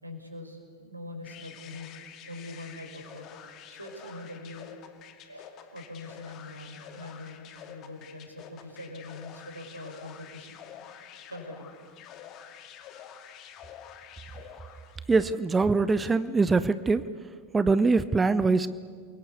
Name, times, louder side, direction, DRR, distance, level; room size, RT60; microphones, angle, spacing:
voice 1, 0.0-3.3 3.7-4.7 5.2-10.6 11.3-11.7 13.1-13.2 14.3-14.8, left 1 dB, 85° right, 5 dB, 4.9 m, -43 dB
sound 1, 1.2-15.1, left 9 dB, 35° left, 2.4 m, -48 dB
voice 2, 15.1-17.0 17.5-18.7, right 4 dB, 15° right, 15 dB, 0.7 m, -23 dB
28.5 x 22.5 x 8.4 m, 2.1 s
figure-of-eight pair, 90°, 0 cm